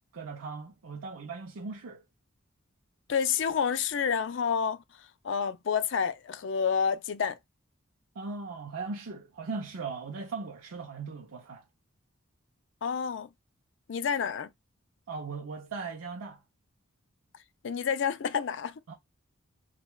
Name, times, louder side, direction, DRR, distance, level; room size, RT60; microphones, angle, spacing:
voice 1, 0.1-2.0 8.1-11.7 15.1-16.4 18.9-19.0, right 4 dB, 90° right, 0.6 m, -38 dB
voice 2, 3.1-4.8 5.2-7.4 12.8-13.3 13.9-14.5 17.6-18.7, left 7 dB, 60° left, 0.4 m, -29 dB
6.2 x 2.2 x 2.3 m
head